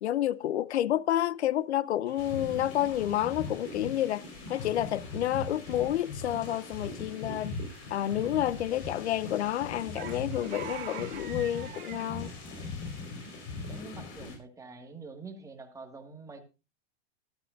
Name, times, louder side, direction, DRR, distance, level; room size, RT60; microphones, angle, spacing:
voice 1, 0.0-4.2 4.5-7.6 7.9-12.3, left 12 dB, 90° left, 0.7 m, -29 dB
sound 1, 2.1-13.8, right 10 dB, 35° right, 1.7 m, -50 dB
sound 2, 2.2-14.4, left 3 dB, 40° left, 5.0 m, -40 dB
voice 2, 13.7-16.4, right 3 dB, 10° right, 2.1 m, -45 dB
13.0 x 13.0 x 2.7 m
hypercardioid pair, 130°, 32 cm